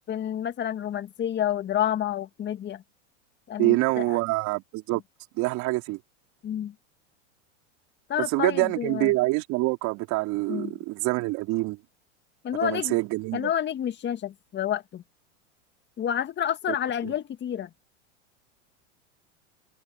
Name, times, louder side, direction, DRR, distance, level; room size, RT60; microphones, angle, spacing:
voice 1, 0.1-2.8 3.5-4.2 6.4-6.7 8.1-9.1 10.5-10.8 12.4-13.0 13.3-15.0 16.0-17.7, left 10 dB, 30° left, 1.9 m, -29 dB
voice 2, 3.6-5.0 5.4-6.0 8.3-11.8 12.6-13.5 16.7-16.8 17.0-17.1, right 21 dB, 50° right, 3.7 m, -26 dB
hypercardioid pair, 105°, 36 cm